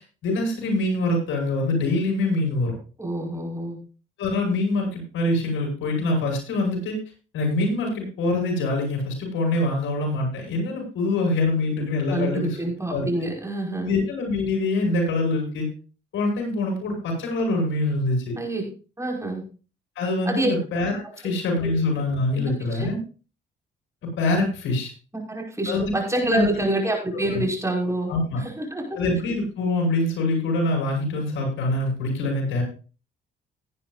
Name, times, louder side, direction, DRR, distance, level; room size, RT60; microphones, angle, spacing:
voice 1, 0.2-2.7 4.2-7.0 7.3-12.6 12.9-13.1 13.8-15.7 16.1-18.3 19.9-23.0 24.0-24.9 25.7-25.9 26.2-26.6 28.1-28.4 29.0-32.6, left 2 dB, 75° left, 1 dB, 6.6 m, -24 dB
voice 2, 3.0-3.8 12.1-13.9 18.3-18.6 19.0-19.4 20.3-20.5 21.0-21.1 21.6-21.7 22.3-22.9 25.1-28.1 28.4-29.0, right 1 dB, 15° right, 0 dB, 5.4 m, -27 dB
18.0 x 9.9 x 2.6 m, 0.36 s
cardioid pair, 90°, 20 cm